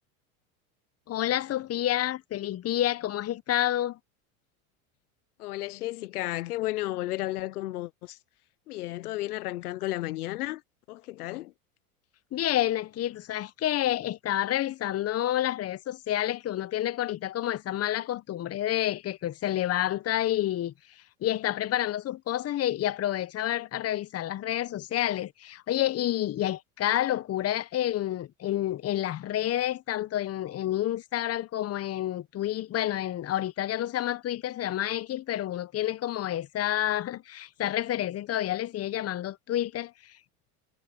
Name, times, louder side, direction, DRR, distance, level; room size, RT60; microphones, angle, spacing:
voice 1, 1.1-4.0 12.3-20.7 21.2-40.1, left 13 dB, 35° left, 1.1 m, -29 dB
voice 2, 5.4-8.2 8.7-10.6 10.9-11.5, left 17 dB, 85° left, 0.9 m, -33 dB
hypercardioid pair, 100°, 44 cm